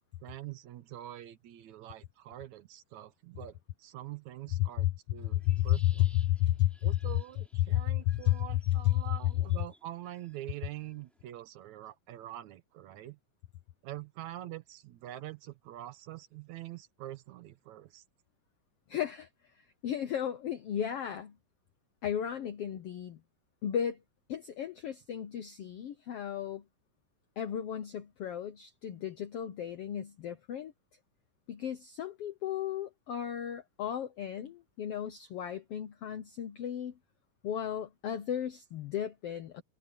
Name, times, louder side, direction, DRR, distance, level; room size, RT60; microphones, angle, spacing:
voice 1, 0.2-6.0 6.8-13.2 13.8-18.0, right 14 dB, 70° right, 2.2 m, -45 dB
voice 2, 4.6-4.9 5.3-6.9 7.7-9.0 18.9-19.3 19.8-21.4 22.0-23.2 23.6-24.0 24.3-26.6 27.4-30.7 31.5-36.9 37.4-39.6, left 12 dB, 70° left, 1.4 m, -33 dB
sound 1, 5.2-11.3, equal, ahead, 3.9 m, -63 dB
omnidirectional pair, 3.8 m